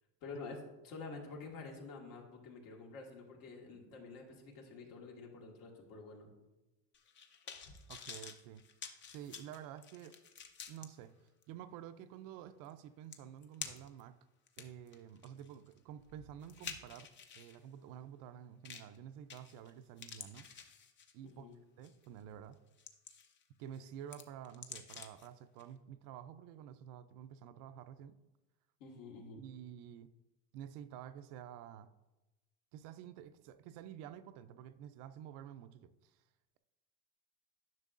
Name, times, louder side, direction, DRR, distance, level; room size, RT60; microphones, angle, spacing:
voice 1, 0.2-0.6 0.8-6.3 21.2-21.6 28.8-29.4, left 4 dB, 65° left, 0 dB, 1.8 m, -49 dB
sound 1, 6.9-10.9 11.4-11.5 12.7-12.8 13.1-14.0 14.5-17.6 18.7-19.0 19.3-19.7 20.0-21.3 21.8-22.1 22.5-23.4 23.7-25.3 25.6-25.7, left 7 dB, 30° left, 0.6 m, -49 dB
voice 2, 7.9-8.6 9.1-10.1 10.7-11.2 11.5-14.2 14.6-20.5 21.1-21.5 21.8-22.6 23.6-28.2 29.4-30.1 30.5-31.9 32.7-36.2, right 10 dB, 60° right, 12 dB, 0.5 m, -50 dB
10.5 x 6.2 x 2.5 m, 1.0 s
cardioid pair, 140°, 37 cm